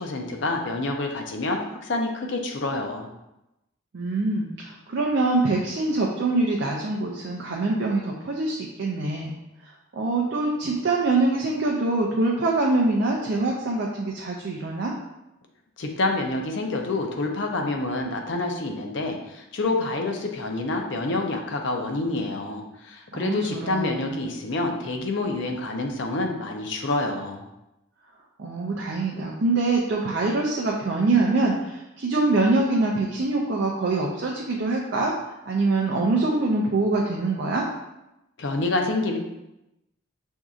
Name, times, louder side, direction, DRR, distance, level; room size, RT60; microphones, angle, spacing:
voice 1, 0.0-3.1 15.8-27.4 38.4-39.2, left 2 dB, 55° left, 3 dB, 0.5 m, -27 dB
voice 2, 3.9-9.3 9.9-14.9 23.1-24.2 28.4-35.2 35.5-37.7, right 2 dB, 55° right, -1 dB, 0.4 m, -24 dB
6.0 x 2.7 x 2.4 m, 0.92 s
head